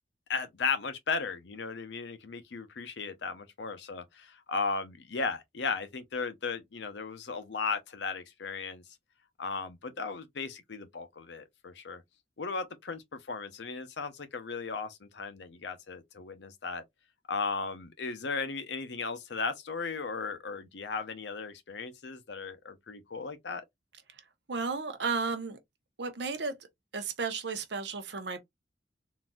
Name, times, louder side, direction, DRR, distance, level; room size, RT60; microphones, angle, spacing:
voice 1, 0.3-8.8 9.4-12.0 12.4-16.8 17.3-23.6, left 4 dB, 70° left, 0.7 m, -36 dB
voice 2, 24.5-25.6 26.0-26.6 26.9-28.4, right 4 dB, 70° right, 0.8 m, -33 dB
3.8 x 2.5 x 2.3 m
head